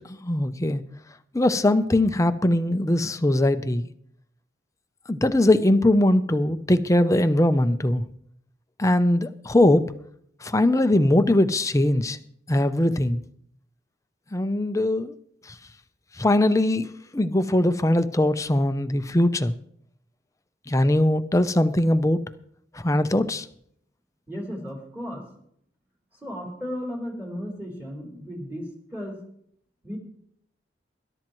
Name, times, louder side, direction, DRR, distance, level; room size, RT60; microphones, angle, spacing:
voice 1, 0.2-0.8 1.3-3.9 5.1-8.0 8.8-9.8 10.4-12.2 12.5-13.2 14.3-15.1 16.2-16.9 17.1-19.5 20.7-22.2 22.7-23.5, left 1 dB, 15° left, 11 dB, 0.6 m, -21 dB
voice 2, 24.3-25.2 26.2-29.2 29.8-30.0, equal, 10° right, -2 dB, 3.9 m, -34 dB
21.0 x 12.0 x 3.1 m, 0.69 s
head